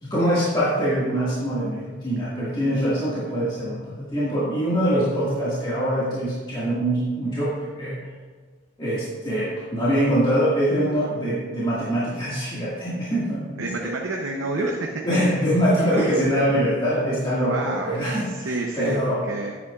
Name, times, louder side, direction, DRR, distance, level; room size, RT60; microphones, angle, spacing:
voice 1, 0.0-8.0 8.8-13.9 14.5-14.7 15.0-19.2, equal, 25° left, -10 dB, 1.9 m, -24 dB
voice 2, 13.6-14.9 15.3-15.4 15.9-16.1 17.4-19.6, right 2 dB, 80° right, 0 dB, 0.8 m, -30 dB
10.5 x 8.4 x 2.4 m, 1.5 s
head